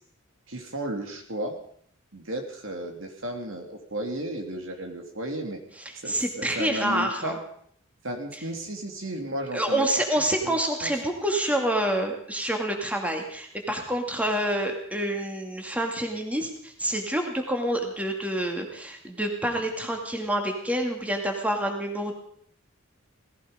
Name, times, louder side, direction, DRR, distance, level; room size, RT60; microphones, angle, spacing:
voice 1, 0.5-1.6 2.1-5.6 5.9-7.4 8.0-9.9 10.4-10.9, right 1 dB, 70° right, 4 dB, 2.8 m, -34 dB
voice 2, 5.8-7.3 8.3-8.4 9.5-22.1, right 1 dB, 5° right, 3 dB, 2.4 m, -27 dB
17.5 x 16.0 x 5.2 m, 0.63 s
head